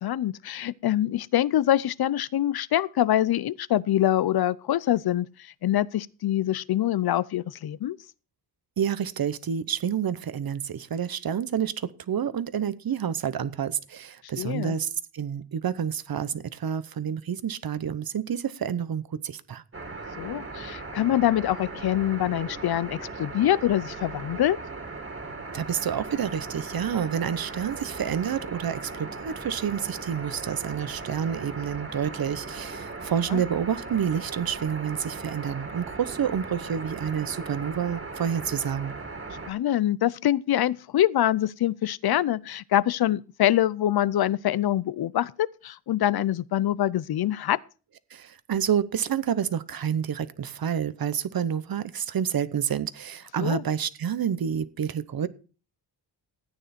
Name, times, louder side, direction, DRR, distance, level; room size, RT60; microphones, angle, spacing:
voice 1, 0.0-5.3 5.6-8.0 14.4-14.8 20.2-24.6 33.3-33.4 39.5-47.6 53.4-53.6, left 12 dB, 60° left, 0.6 m, -25 dB
voice 2, 8.8-14.9 15.1-19.6 25.5-38.9 48.1-55.3, right 8 dB, 55° right, 0.9 m, -29 dB
sound 1, 19.7-39.5, right 3 dB, 30° right, 2.2 m, -38 dB
13.5 x 9.3 x 4.3 m
wide cardioid pair, 115°, 43 cm